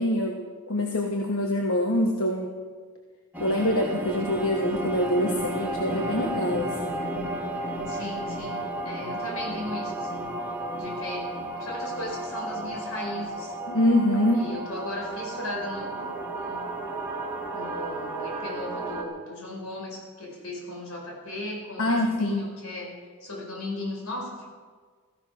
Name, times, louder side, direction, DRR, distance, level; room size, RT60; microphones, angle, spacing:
voice 1, 0.0-2.5 3.4-7.1 13.7-14.5 21.8-22.4, left 1 dB, 70° left, 2 dB, 1.4 m, -25 dB
sound 1, 3.3-19.0, right 1 dB, 10° right, 2.0 m, -33 dB
voice 2, 7.9-10.3 10.8-13.5 14.3-16.8 17.5-22.9 23.2-24.5, left 1 dB, 90° left, 0 dB, 4.8 m, -37 dB
16.0 x 15.0 x 6.0 m, 1.6 s
head